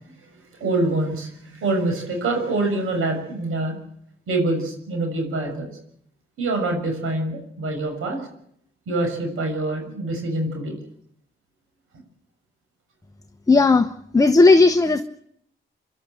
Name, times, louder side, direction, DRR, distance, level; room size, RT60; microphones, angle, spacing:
voice 1, 0.6-3.8 4.3-5.7 6.4-8.2 8.9-10.7, right 2 dB, 90° right, 4 dB, 6.5 m, -25 dB
voice 2, 13.5-15.0, left 3 dB, 15° left, 8 dB, 0.9 m, -15 dB
28.0 x 12.0 x 9.0 m, 0.70 s
cardioid pair, 110°, 21 cm